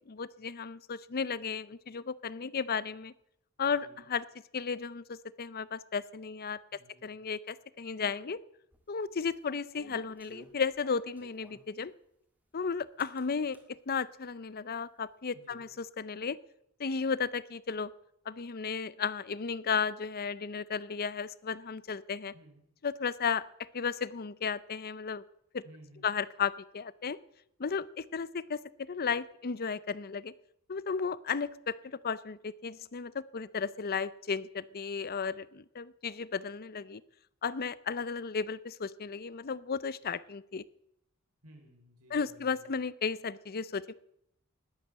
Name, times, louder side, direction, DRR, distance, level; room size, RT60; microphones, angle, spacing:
voice 1, 0.1-3.1 3.6-4.2 4.5-6.6 7.0-8.4 8.9-11.9 12.5-13.6 13.9-16.4 16.8-17.9 18.3-22.3 22.8-23.4 23.7-25.2 25.5-25.6 26.0-27.2 27.6-28.6 28.9-30.3 30.7-37.0 37.4-40.6 42.1-43.9, left 5 dB, 45° left, 18 dB, 0.6 m, -34 dB
voice 2, 3.6-4.1 6.7-7.1 15.3-15.6 22.3-22.6 25.6-26.1 41.4-42.7, right 1 dB, 85° right, 3 dB, 3.9 m, -57 dB
sound 1, 8.7-11.7 13.0-13.7, equal, 5° right, 2.0 m, -57 dB
20.0 x 8.5 x 7.4 m, 0.77 s
head